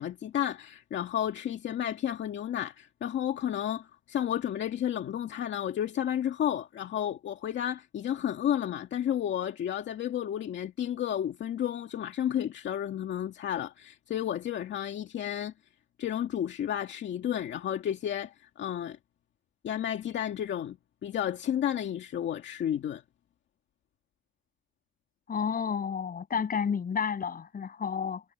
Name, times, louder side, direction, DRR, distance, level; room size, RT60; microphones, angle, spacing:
voice 1, 0.0-15.5 16.0-19.0 19.6-20.8 21.0-23.0, left 10 dB, 70° left, 2.2 m, -32 dB
voice 2, 25.3-28.2, left 6 dB, 45° left, 6.9 m, -31 dB
cardioid pair, 90°, 20 cm